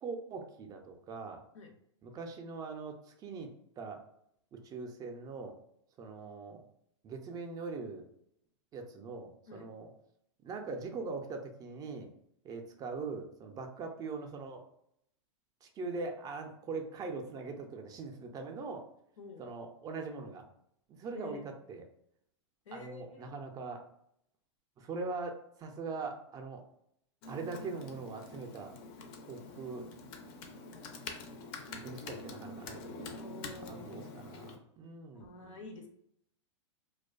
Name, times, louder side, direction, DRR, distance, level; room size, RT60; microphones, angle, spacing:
voice 1, 0.0-1.4 2.0-3.5 3.8-4.0 4.5-5.5 6.0-6.6 7.0-8.1 8.7-9.9 10.4-12.1 12.4-14.6 15.6-18.8 19.4-20.4 20.9-21.8 22.7-23.8 24.8-26.6 27.3-28.7 29.3-29.9 31.7-33.1 33.7-35.6, right 4 dB, 25° right, 4 dB, 0.3 m, -41 dB
voice 2, 21.1-21.5 22.7-23.3 33.2-34.1 35.1-35.9, left 3 dB, 85° left, 4 dB, 0.6 m, -48 dB
Computer keyboard, 27.2-34.6, left 3 dB, 45° left, 0.4 m, -46 dB
2.4 x 2.2 x 2.3 m, 0.73 s
hypercardioid pair, 120°, 16 cm